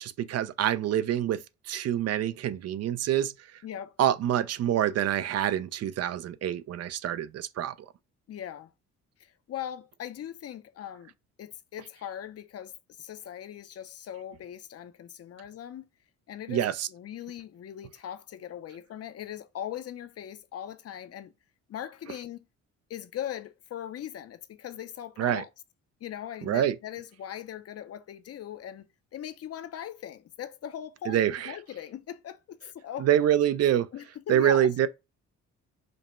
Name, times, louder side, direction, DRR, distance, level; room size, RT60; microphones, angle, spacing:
voice 1, 0.0-3.3 4.0-7.7 16.5-16.9 25.2-25.4 26.5-26.8 31.1-31.5 33.0-33.9 34.3-34.9, right 11 dB, 55° right, 0.5 m, -26 dB
voice 2, 3.6-3.9 8.3-8.7 9.2-11.1 11.4-12.7 13.0-15.8 16.3-21.3 21.7-22.4 22.9-25.5 26.0-28.9 29.1-33.1 33.9-34.7, left 10 dB, 55° left, 0.6 m, -40 dB
5.1 x 2.1 x 3.0 m
cardioid pair, 90°, 30 cm